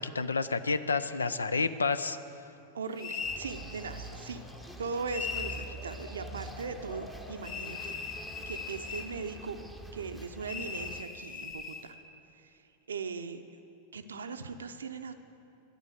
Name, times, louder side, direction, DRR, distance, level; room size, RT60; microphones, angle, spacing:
voice 1, 0.0-2.2, left 4 dB, 75° left, 13 dB, 0.5 m, -29 dB
voice 2, 2.7-4.5 4.8-9.6 9.9-11.9 12.4-12.5 12.9-13.4 13.9-15.1, right 4 dB, 70° right, 8 dB, 0.6 m, -39 dB
Laughter / Crowd, 3.0-9.4, left 3 dB, 50° left, 2.3 m, -52 dB
sound 1, 3.0-3.5 5.1-5.7 7.4-9.1 10.5-11.9, left 5 dB, 30° left, 1.0 m, -38 dB
sound 2, 3.2-11.0, right 2 dB, 5° left, 0.8 m, -46 dB
12.0 x 9.6 x 8.0 m, 2.7 s
figure-of-eight pair, 90°, 0 cm